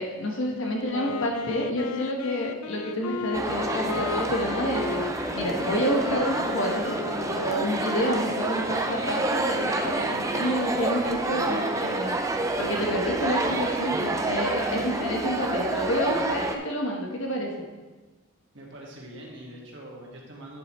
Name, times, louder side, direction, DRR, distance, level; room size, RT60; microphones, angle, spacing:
voice 1, 0.0-5.0 5.3-7.0 7.3-12.2 12.6-17.6, equal, 60° left, 0 dB, 1.3 m, -29 dB
Wind instrument woodwind instrument, 0.8-8.0, left 6 dB, 80° left, 0.3 m, -35 dB
sound 1, 3.3-16.6, right 2 dB, 15° right, 0.4 m, -28 dB
voice 2, 18.5-20.6, right 1 dB, 55° right, -2 dB, 1.8 m, -43 dB
9.6 x 7.8 x 3.2 m, 1.3 s
head